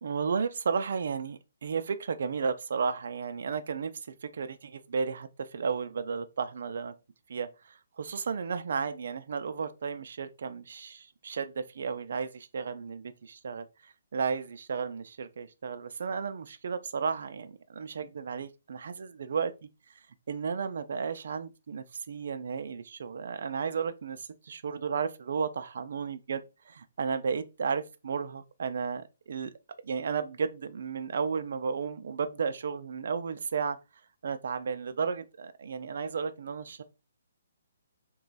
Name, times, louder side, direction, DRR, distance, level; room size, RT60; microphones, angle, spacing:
voice 1, 0.0-3.9 4.2-6.9 7.3-19.7 20.3-29.5 29.8-33.8 34.2-36.8, right 5 dB, 50° right, 0.3 m, -33 dB
3.0 x 2.3 x 3.9 m
hypercardioid pair, 175°, 0 cm